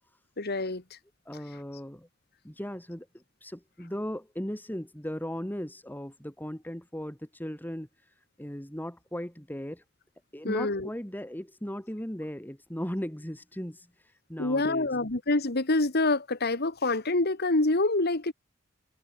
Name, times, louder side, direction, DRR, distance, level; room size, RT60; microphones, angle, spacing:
voice 1, 0.4-1.0 10.4-10.9 14.4-18.3, left 2 dB, 50° left, 2.0 m, -26 dB
voice 2, 1.2-2.1 2.4-9.8 10.3-14.9, equal, 10° left, 3.2 m, -37 dB
head